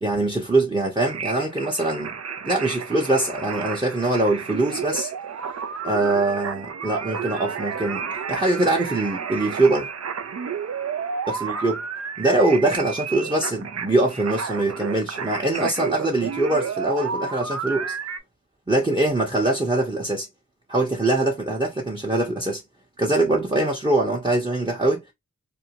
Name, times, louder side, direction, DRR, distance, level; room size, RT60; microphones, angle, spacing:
voice 1, 0.0-2.2 2.4-5.1 5.8-8.0 8.3-9.9 11.3-11.8 12.2-18.0 18.7-20.3 20.7-22.6 23.0-25.0, right 2 dB, 15° right, 0.9 m, -23 dB
sound 1, 1.0-18.2, right 6 dB, 55° right, 0.5 m, -31 dB
2.6 x 2.2 x 2.9 m
wide cardioid pair, 60°, 31 cm